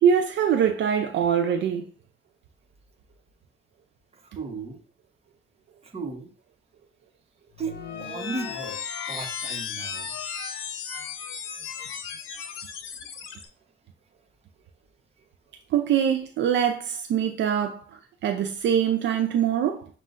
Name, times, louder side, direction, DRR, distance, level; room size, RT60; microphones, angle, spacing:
voice 1, 0.0-1.9 15.7-17.8 18.2-19.9, right 8 dB, 65° right, 0.5 m, -23 dB
voice 2, 4.2-4.8 5.8-6.3 7.6-7.7 8.0-8.8 9.1-10.2, right 4 dB, 30° right, 1.0 m, -35 dB
sound 1, 7.5-13.5, left 7 dB, 85° left, 0.7 m, -35 dB
7.3 x 2.4 x 2.5 m
cardioid pair, 90°, 20 cm